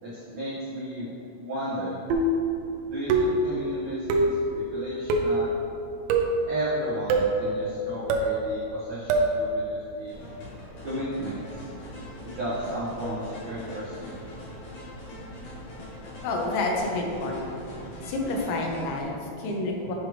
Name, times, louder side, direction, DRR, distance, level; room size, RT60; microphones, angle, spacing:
voice 1, 0.0-2.0 2.9-5.5 6.5-10.1 10.8-11.7 12.2-14.3, right 1 dB, 70° right, -12 dB, 1.6 m, -34 dB
sound 1, 2.1-2.5 3.1-3.5 4.1-4.4 5.1-5.4 6.1-6.4 7.1-7.4 8.1-8.4 9.1-9.4, right 2 dB, 90° right, 2.5 m, -23 dB
sound 2, 10.1-19.0, equal, 60° left, 3.5 m, -42 dB
voice 2, 16.2-17.5 18.0-19.9, left 2 dB, 85° left, 0 dB, 3.7 m, -29 dB
9.0 x 6.5 x 3.3 m, 2.7 s
omnidirectional pair, 6.0 m